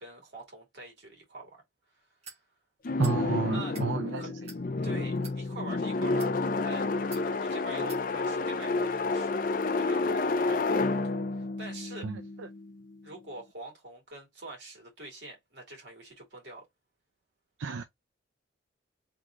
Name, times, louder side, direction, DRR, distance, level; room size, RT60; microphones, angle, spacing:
voice 1, 0.0-1.6 1.9-2.1 3.5-3.8 4.2-4.3 4.8-9.3 9.7-12.1 13.0-16.7, right 2 dB, 65° right, 2.4 m, -45 dB
sound 1, 2.2-2.4 3.0-3.2 3.6-3.9 4.4-4.6 5.2-5.4 6.0-6.3 7.1-7.3 7.9-8.0, right 5 dB, 35° right, 1.2 m, -46 dB
sound 2, 2.8-12.8, left 3 dB, 45° left, 0.5 m, -30 dB
voice 2, 3.0-4.3 12.0-12.2 17.6-17.8, right 5 dB, 85° right, 0.5 m, -31 dB
3.8 x 3.1 x 3.7 m
head